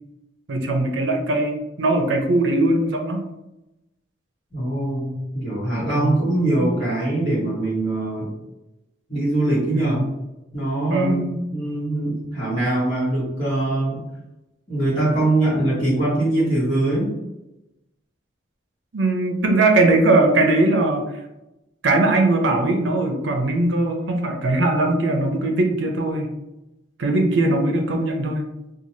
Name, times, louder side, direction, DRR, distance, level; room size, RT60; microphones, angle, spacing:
voice 1, 0.5-3.2 5.9-6.2 9.7-10.1 10.9-11.2 18.9-21.0 21.8-26.3 27.0-28.4, right 2 dB, 85° right, 3 dB, 0.5 m, -20 dB
voice 2, 4.5-8.3 9.1-10.0 10.5-14.0 14.7-17.1, right 1 dB, 35° left, -13 dB, 1.1 m, -22 dB
3.0 x 2.3 x 2.7 m, 0.94 s
head